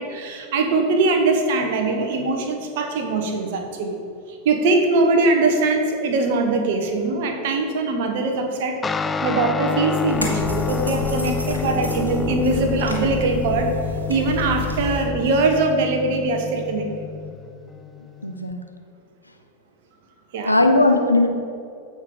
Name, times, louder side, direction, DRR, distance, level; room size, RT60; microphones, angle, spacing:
voice 1, 0.0-4.0 4.3-8.8 9.2-13.8 14.1-17.1 20.3-20.5 21.0-21.1, right 3 dB, 50° right, 4 dB, 1.3 m, -22 dB
Guitar, 8.8-18.5, left 6 dB, 15° left, 0.3 m, -28 dB
sound 1, 10.1-15.1, left 1 dB, 80° right, 1.4 m, -31 dB
voice 2, 18.2-18.6 20.5-21.3, left 2 dB, 85° left, 6 dB, 0.7 m, -18 dB
15.0 x 5.7 x 3.9 m, 2.5 s
figure-of-eight pair, 90°, 0 cm